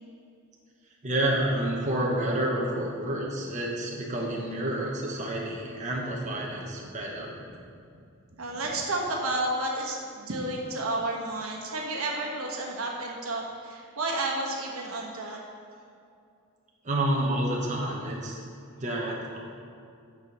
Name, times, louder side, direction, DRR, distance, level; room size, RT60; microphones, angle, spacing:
voice 1, 1.0-7.3 16.8-18.4 18.8-19.4, right 1 dB, 35° right, -2 dB, 1.0 m, -29 dB
voice 2, 8.4-15.4, right 2 dB, 75° right, -1 dB, 1.2 m, -31 dB
8.1 x 4.9 x 6.0 m, 2.4 s
head